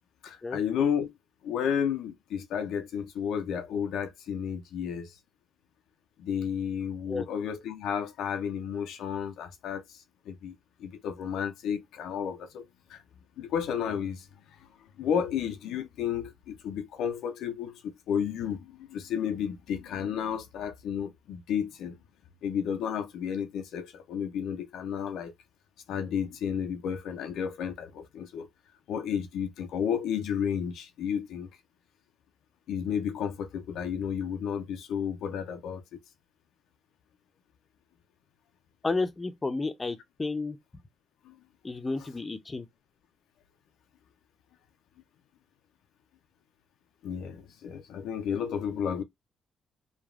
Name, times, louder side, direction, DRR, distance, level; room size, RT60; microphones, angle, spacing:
voice 1, 0.2-1.1 1.4-5.2 6.2-12.6 12.9-13.0 13.4-14.3 14.6-14.7 15.0-22.0 22.4-25.3 25.9-28.5 28.9-31.5 32.7-35.8 41.2-41.4 42.0-42.1 47.0-49.0, left 8 dB, 80° left, 0.4 m, -32 dB
voice 2, 38.8-40.6 41.6-42.7, left 3 dB, 25° left, 0.5 m, -31 dB
3.1 x 2.2 x 2.3 m
cardioid pair, 90°, 0 cm